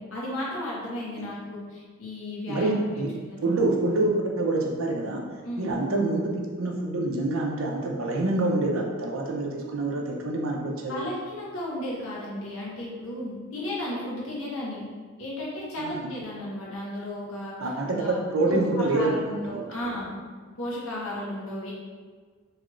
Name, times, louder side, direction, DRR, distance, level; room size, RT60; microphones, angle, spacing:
voice 1, 0.0-3.6 5.4-5.8 10.9-14.8 15.2-20.2 20.6-21.7, left 1 dB, 70° left, -5 dB, 0.9 m, -34 dB
voice 2, 2.5-3.1 3.4-5.2 5.6-11.1 15.8-16.1 17.6-19.6, right 2 dB, 70° right, 0 dB, 0.5 m, -26 dB
3.0 x 2.5 x 3.0 m, 1.5 s
head